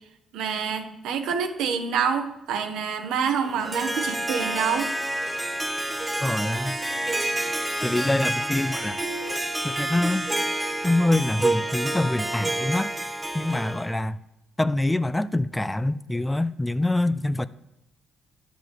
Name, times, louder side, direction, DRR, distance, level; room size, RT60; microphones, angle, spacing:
voice 1, 0.3-4.9 5.2-5.3, right 6 dB, 85° right, 6 dB, 1.1 m, -27 dB
Harp, 3.4-14.0, right 1 dB, 10° right, 0.9 m, -28 dB
voice 2, 6.2-6.8 7.8-9.0 9.6-10.3 10.8-12.9 13.3-14.2 14.6-17.5, left 1 dB, 10° left, 15 dB, 0.4 m, -25 dB
10.5 x 5.0 x 7.8 m, 0.89 s
cardioid pair, 90°, 0 cm